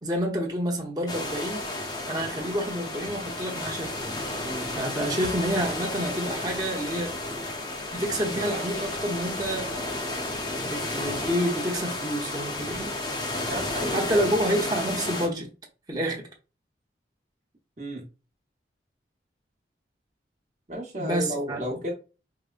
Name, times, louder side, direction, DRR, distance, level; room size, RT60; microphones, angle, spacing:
voice 1, 0.0-1.7 2.1-4.0 4.7-7.1 7.9-10.2 10.6-12.9 13.9-15.5 15.9-16.3 21.0-21.6, equal, 20° right, 0.8 m, -29 dB
sound 1, 1.1-15.3, left 2 dB, 25° left, 0.6 m, -32 dB
voice 2, 4.4-4.7 13.3-14.3 17.8-18.1 20.7-21.9, equal, 40° right, 1.0 m, -33 dB
4.8 x 2.1 x 2.4 m
head